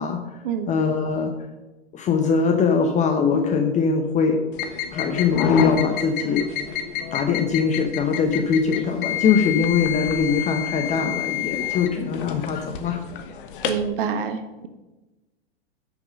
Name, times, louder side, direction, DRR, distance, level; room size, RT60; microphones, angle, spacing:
voice 1, 0.0-0.4 0.7-1.3 1.9-4.4 4.9-6.5 7.1-13.0, left 5 dB, 20° left, 5 dB, 0.8 m, -22 dB
sound 1, 4.5-13.9, left 9 dB, 50° left, 1.2 m, -28 dB
voice 2, 13.6-14.7, right 7 dB, 55° right, 8 dB, 1.4 m, -27 dB
8.8 x 6.3 x 6.2 m, 1.1 s
hypercardioid pair, 110°, 33 cm